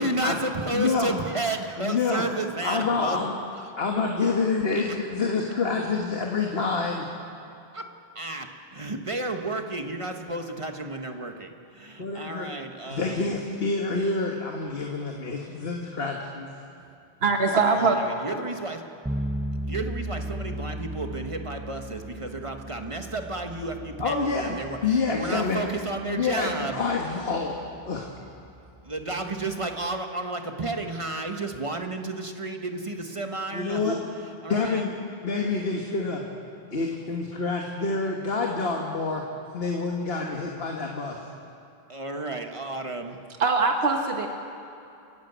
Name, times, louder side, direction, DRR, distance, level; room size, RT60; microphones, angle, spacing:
voice 1, 0.0-3.2 4.8-4.9 7.7-7.9 8.1-13.3 17.8-18.8 19.6-26.8 28.8-33.8 34.4-34.8 41.9-43.2, right 2 dB, 30° right, 5 dB, 1.3 m, -32 dB
voice 2, 0.7-1.1 1.8-2.2 2.6-3.3 3.8-7.1 12.0-12.5 12.9-16.5 24.0-24.6 24.8-25.6 26.1-27.6 27.8-28.1 33.5-34.0 34.5-34.9 35.2-36.2 36.7-39.2 39.5-41.2, left 4 dB, 65° left, 1 dB, 1.7 m, -27 dB
voice 3, 17.2-18.0 43.4-44.3, right 4 dB, 70° right, 4 dB, 1.5 m, -22 dB
sound 1, 19.1-29.9, right 1 dB, 5° right, 0.5 m, -37 dB
29.0 x 11.5 x 8.1 m, 2.7 s
omnidirectional pair, 1.1 m